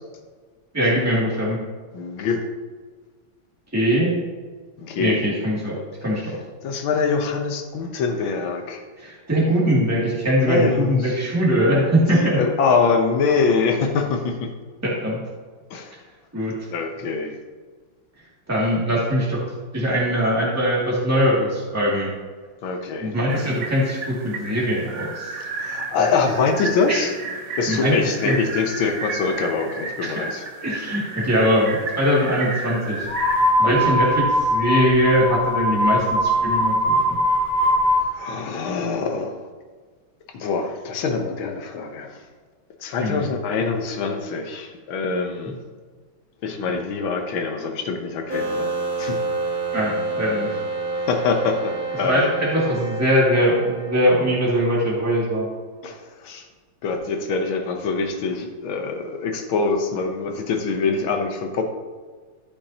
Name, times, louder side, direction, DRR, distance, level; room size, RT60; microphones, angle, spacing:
voice 1, 0.7-1.6 3.7-4.1 5.0-6.4 9.0-12.4 14.8-15.2 16.3-16.6 18.5-19.4 19.7-22.1 23.0-25.3 26.9-27.0 27.7-28.4 30.0-30.3 30.6-33.1 33.6-37.0 43.0-43.2 49.7-50.5 52.0-55.5, equal, 10° right, -6 dB, 2.4 m, -21 dB
voice 2, 1.9-2.4 4.8-5.2 6.6-8.8 10.4-11.2 12.1-14.5 15.7-15.9 16.7-17.4 22.6-23.1 25.4-27.1 27.6-30.4 33.6-34.0 38.0-39.4 40.3-42.2 42.8-45.6 46.4-48.7 49.0-49.2 51.1-52.3 55.8-56.5 56.8-61.6, left 4 dB, 85° left, 4 dB, 1.8 m, -24 dB
sound 1, 23.3-33.5, right 4 dB, 50° right, 1.0 m, -32 dB
sound 2, 33.1-38.0, equal, 25° left, 2.6 m, -20 dB
sound 3, 48.3-54.7, right 3 dB, 75° right, 2.6 m, -28 dB
13.0 x 6.9 x 2.9 m, 1.5 s
omnidirectional pair, 2.1 m